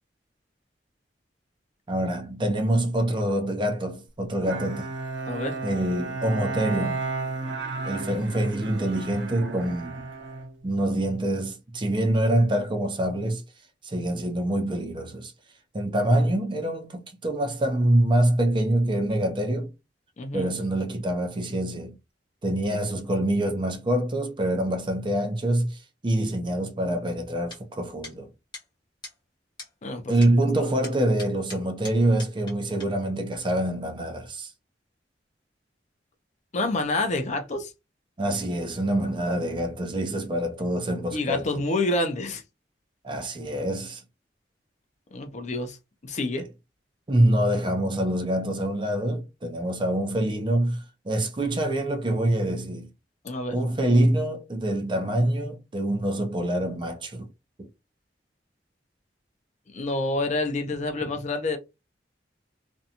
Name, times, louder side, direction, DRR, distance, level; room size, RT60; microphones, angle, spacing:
voice 1, 1.9-4.9 5.6-7.0 7.9-10.1 10.6-13.4 13.8-15.3 15.7-19.7 20.3-21.9 22.4-28.3 30.1-34.5 38.2-41.6 43.0-44.0 47.1-52.9 53.5-57.3 57.6-57.7, right 1 dB, 25° right, 0.5 m, -25 dB
Bowed string instrument, 4.5-11.1, right 3 dB, 85° right, 0.5 m, -33 dB
voice 2, 5.3-5.6 20.2-20.5 29.8-30.1 36.5-37.7 41.1-42.4 45.1-45.8 46.0-46.5 53.2-53.6 59.7-61.6, left 2 dB, 40° left, 0.5 m, -28 dB
sound 1, 27.5-27.6 28.0-28.1 28.5-28.7 29.0-29.2 29.6-29.7 30.2-30.3 30.8-32.5 32.8-32.9, left 3 dB, 25° left, 1.1 m, -41 dB
2.6 x 2.2 x 2.7 m
head